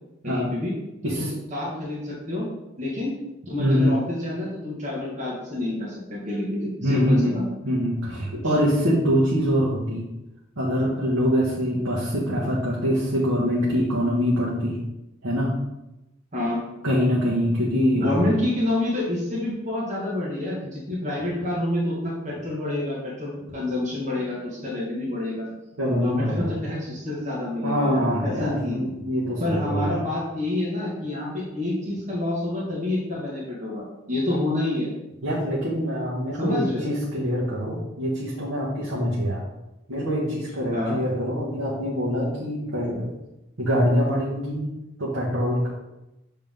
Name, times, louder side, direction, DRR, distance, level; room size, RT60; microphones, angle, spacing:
voice 1, 0.2-0.7 1.2-2.5 2.8-3.1 3.5-7.4 16.3-16.6 17.9-25.5 25.9-28.8 29.4-34.9 36.4-36.8 40.7-41.0, left 1 dB, 35° right, -5 dB, 1.6 m, -28 dB
voice 2, 3.6-3.9 6.8-7.3 7.6-10.0 10.6-14.8 15.2-15.5 16.8-18.3 25.8-26.5 27.6-30.1 35.2-39.4 39.9-43.1 43.6-44.7 45.0-45.7, equal, 85° right, -7 dB, 1.4 m, -24 dB
7.2 x 3.7 x 3.6 m, 0.95 s
head